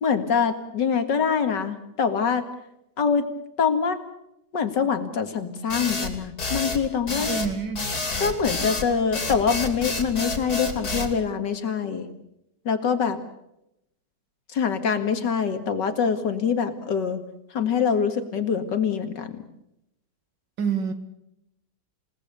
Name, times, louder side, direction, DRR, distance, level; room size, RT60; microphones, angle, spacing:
voice 1, 0.0-2.5 3.0-3.2 3.6-4.0 4.5-7.3 8.2-12.1 12.7-13.2 14.5-17.2 17.5-19.4, left 6 dB, 75° left, 8 dB, 2.6 m, -24 dB
sound 1, 5.7-11.1, left 3 dB, 55° left, 3.5 m, -29 dB
voice 2, 7.3-7.8 20.6-20.9, right 5 dB, 80° right, 10 dB, 2.6 m, -26 dB
28.0 x 18.5 x 6.8 m, 0.82 s
omnidirectional pair, 1.9 m